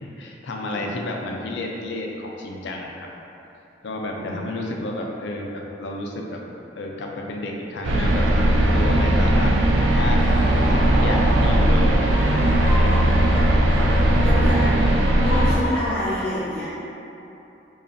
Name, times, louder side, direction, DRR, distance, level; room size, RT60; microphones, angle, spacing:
voice 1, 0.0-3.1 3.8-6.4 6.8-9.6 9.9-13.1 14.3-14.5, left 2 dB, 65° left, 0 dB, 0.4 m, -31 dB
sound 1, 7.8-15.5, right 1 dB, 80° right, 0.4 m, -18 dB
sound 2, 9.7-15.9, left 1 dB, 30° left, 1.5 m, -32 dB
voice 2, 14.2-14.7 15.2-16.7, left 1 dB, 5° left, -11 dB, 0.4 m, -28 dB
5.1 x 2.4 x 2.6 m, 2.9 s
head